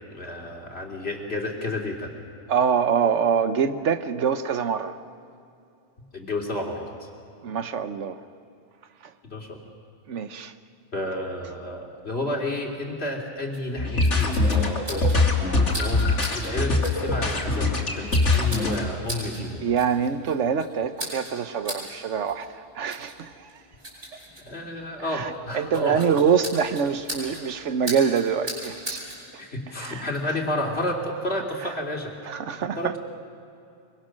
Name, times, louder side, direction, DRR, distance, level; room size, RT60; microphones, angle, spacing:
voice 1, 0.1-2.1 6.1-6.9 9.3-9.6 10.9-19.7 24.4-26.0 27.4-27.5 27.9-28.0 29.0-32.1 32.6-33.0, left 1 dB, 60° left, 0 dB, 3.2 m, -31 dB
voice 2, 2.5-5.0 7.4-8.1 10.1-10.5 19.6-23.3 25.1-29.0 29.8-30.0 32.3-33.0, right 7 dB, 90° right, 11 dB, 1.2 m, -25 dB
sound 1, 13.5-29.2, equal, 50° right, 7.0 m, -40 dB
sound 2, 13.8-18.8, left 2 dB, 80° left, 3.0 m, -22 dB
24.0 x 24.0 x 6.4 m, 2.6 s
omnidirectional pair, 1.2 m